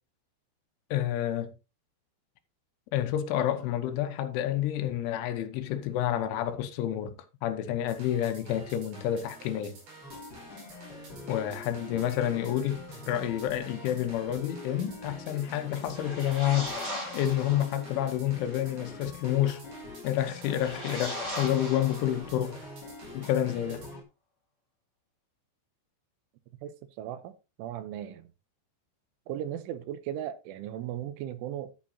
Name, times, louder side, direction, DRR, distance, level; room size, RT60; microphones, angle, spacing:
voice 1, 0.9-1.5 2.9-7.2 7.4-9.8 11.3-16.7 17.1-19.6 20.0-22.6 23.1-23.9, left 11 dB, 80° left, 3.4 m, -29 dB
sound 1, 7.9-23.9, right 3 dB, 55° right, 6.9 m, -50 dB
sound 2, 10.0-24.0, left 3 dB, 30° left, 2.0 m, -45 dB
sound 3, 15.7-17.8 20.2-22.5, left 1 dB, 25° right, 4.9 m, -38 dB
voice 2, 26.6-28.3 29.3-31.7, right 11 dB, 80° right, 3.3 m, -37 dB
11.0 x 8.8 x 2.8 m
omnidirectional pair, 5.7 m